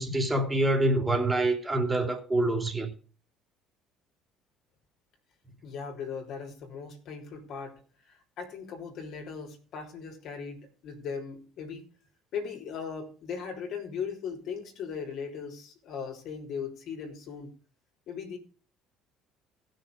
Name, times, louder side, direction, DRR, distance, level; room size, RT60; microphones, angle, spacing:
voice 1, 0.0-2.9, right 2 dB, 20° right, 3.1 m, -26 dB
voice 2, 5.6-7.8 8.1-11.9 12.3-17.5 18.1-18.4, left 6 dB, 60° left, 3.3 m, -38 dB
15.5 x 6.6 x 5.1 m
hypercardioid pair, 65°, 0 cm